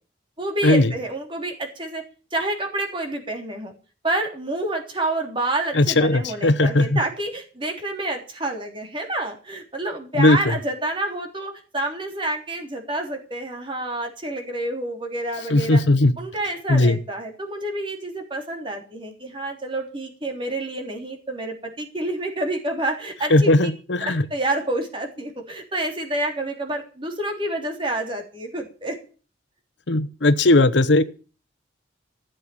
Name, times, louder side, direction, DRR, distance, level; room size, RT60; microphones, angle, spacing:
voice 1, 0.4-2.0 2.3-3.7 4.0-15.8 16.2-23.7 24.0-29.0, right 1 dB, 25° right, 3 dB, 3.5 m, -28 dB
voice 2, 5.7-7.0 10.2-10.5 15.5-16.1 16.7-17.0 23.3-24.2 29.9-31.0, left 2 dB, 75° left, 13 dB, 1.0 m, -17 dB
15.0 x 7.9 x 8.6 m, 0.37 s
head